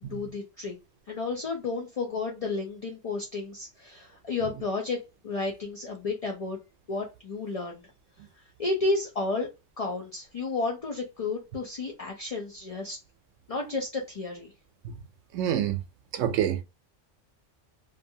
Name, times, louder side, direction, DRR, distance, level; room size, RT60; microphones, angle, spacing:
voice 1, 0.0-0.7 1.1-6.6 6.9-7.8 8.6-9.5 9.8-13.0 13.5-14.5, left 3 dB, 50° left, 0.4 m, -32 dB
voice 2, 15.3-15.8 16.1-16.6, right 10 dB, 80° right, 0.9 m, -27 dB
2.6 x 2.5 x 2.6 m
omnidirectional pair, 1.3 m